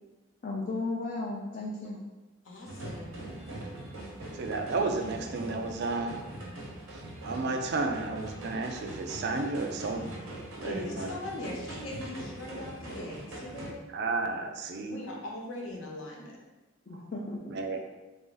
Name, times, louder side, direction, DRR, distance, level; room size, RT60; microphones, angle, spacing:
voice 1, 0.4-2.0 16.9-17.4, left 2 dB, 40° left, -4 dB, 0.4 m, -34 dB
voice 2, 2.4-3.2 10.6-13.8 14.8-16.4, left 1 dB, 70° left, -2 dB, 0.8 m, -40 dB
sound 1, 2.7-13.7, right 1 dB, 80° right, 0.9 m, -42 dB
voice 3, 4.3-6.2 6.9-10.1 10.5-11.2 13.9-15.0 17.5-17.8, right 3 dB, 55° right, 4 dB, 0.4 m, -32 dB
3.4 x 2.6 x 3.8 m, 1.1 s
head